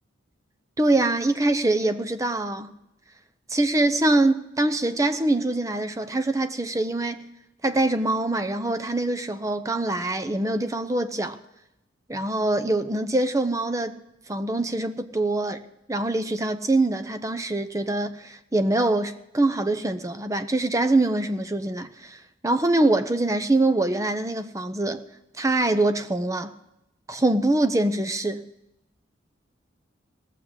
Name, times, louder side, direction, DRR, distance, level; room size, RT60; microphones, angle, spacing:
voice 1, 0.8-2.7 3.5-7.3 7.6-11.4 12.1-14.0 14.3-22.2 22.4-25.0 25.4-26.5 27.1-28.4, right 2 dB, 15° right, 0.7 m, -24 dB
17.5 x 7.5 x 9.6 m
head